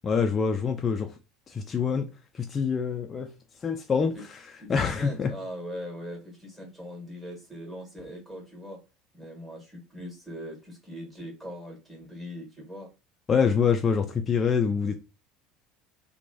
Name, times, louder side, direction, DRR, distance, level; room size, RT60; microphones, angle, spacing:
voice 1, 0.0-1.1 1.5-2.1 2.3-3.3 3.6-4.4 4.7-5.3 13.3-15.0, left 6 dB, 30° left, 0.3 m, -25 dB
voice 2, 4.6-8.8 9.1-12.9, equal, 5° right, 1.3 m, -41 dB
2.9 x 2.2 x 2.5 m
figure-of-eight pair, 65°, 0 cm